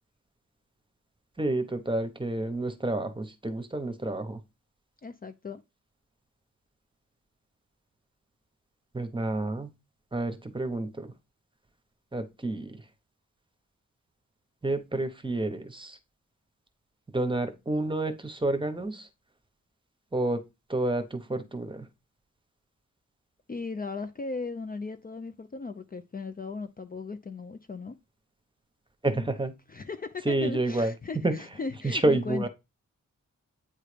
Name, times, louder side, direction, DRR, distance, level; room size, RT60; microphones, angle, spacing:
voice 1, 1.4-4.4 8.9-9.7 10.1-11.1 12.1-12.8 14.6-16.0 17.1-19.1 20.1-20.4 20.7-21.9 29.0-29.5 30.2-30.9 31.2-31.3 31.8-32.5, right 2 dB, 15° right, 0.9 m, -29 dB
voice 2, 5.0-5.6 23.5-28.0 29.1-29.3 29.7-32.5, left 4 dB, 30° left, 0.5 m, -37 dB
8.8 x 3.2 x 5.0 m
wide cardioid pair, 175°, 31 cm